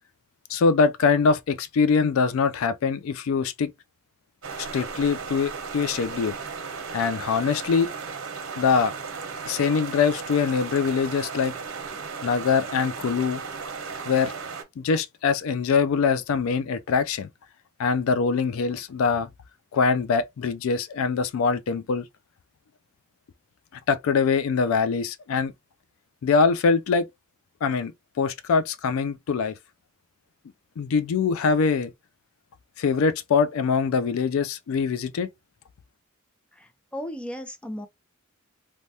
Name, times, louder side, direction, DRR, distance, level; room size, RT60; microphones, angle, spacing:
voice 1, 0.5-3.7 4.6-6.3 6.9-7.9 8.6-8.9 9.5-11.5 12.2-13.4 14.1-14.3 14.8-17.3 17.8-19.3 19.7-22.0 23.9-25.5 26.2-27.1 27.6-27.9 28.2-29.6 30.8-31.9 32.8-35.3, left 5 dB, 70° left, 0.3 m, -23 dB
sound 1, 4.4-14.6, right 5 dB, 75° right, 0.8 m, -35 dB
voice 2, 36.5-37.9, equal, 5° left, 0.4 m, -36 dB
3.2 x 2.2 x 2.7 m
head